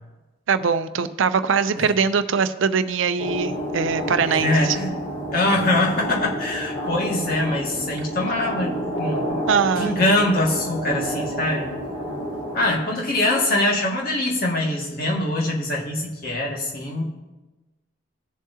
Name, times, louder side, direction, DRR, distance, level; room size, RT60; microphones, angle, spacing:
voice 1, 0.5-4.8 9.5-10.0, right 6 dB, 85° right, 12 dB, 0.5 m, -22 dB
sound 1, 3.2-12.7, equal, 30° left, 2.6 m, -29 dB
voice 2, 4.3-4.9 5.3-9.4 9.8-11.7 12.5-17.0, left 1 dB, 50° left, -2 dB, 1.9 m, -23 dB
17.5 x 7.3 x 2.8 m, 1.1 s
head